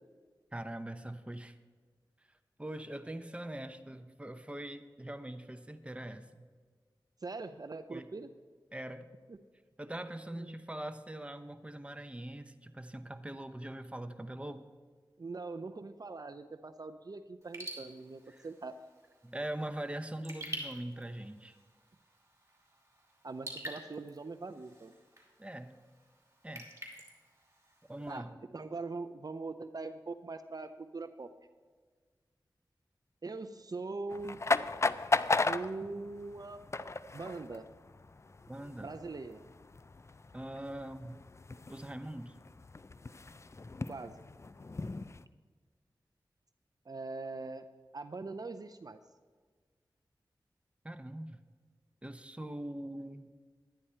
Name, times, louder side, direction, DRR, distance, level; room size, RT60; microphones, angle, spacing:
voice 1, 0.5-1.6 2.6-6.4 7.9-8.1 8.7-9.1 9.8-14.6 18.3-18.5 19.2-21.6 25.4-25.8 26.4-26.7 27.9-28.4 38.5-38.9 40.3-41.2 41.7-42.3 50.8-51.4 52.0-53.3, right 1 dB, 15° right, 9 dB, 0.7 m, -42 dB
voice 2, 7.2-8.3 9.3-9.4 10.4-10.5 15.2-18.7 23.2-24.9 28.1-31.3 33.2-34.4 35.4-36.7 37.1-37.7 38.8-39.4 43.9-44.2 46.9-47.6 47.9-49.0, right 3 dB, 50° right, 9 dB, 0.5 m, -42 dB
Raindrop / Drip, 17.4-28.2, right 1 dB, 35° right, 2.6 m, -49 dB
sound 1, 34.1-45.2, left 3 dB, 35° left, 0.4 m, -36 dB
11.5 x 9.8 x 4.4 m, 1.5 s
cardioid pair, 45°, 8 cm